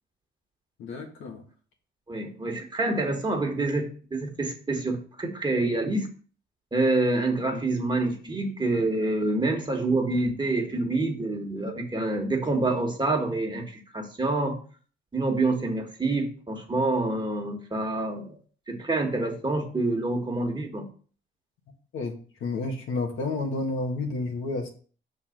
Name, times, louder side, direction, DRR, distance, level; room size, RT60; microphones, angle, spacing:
voice 1, 0.8-1.4 7.5-7.6 21.9-22.1 22.4-24.7, left 3 dB, 80° left, 1.6 m, -30 dB
voice 2, 2.1-6.1 6.7-14.6 15.1-18.3 18.7-20.9, right 2 dB, 20° right, 1.6 m, -27 dB
6.0 x 4.1 x 5.1 m
cardioid pair, 90°, 20 cm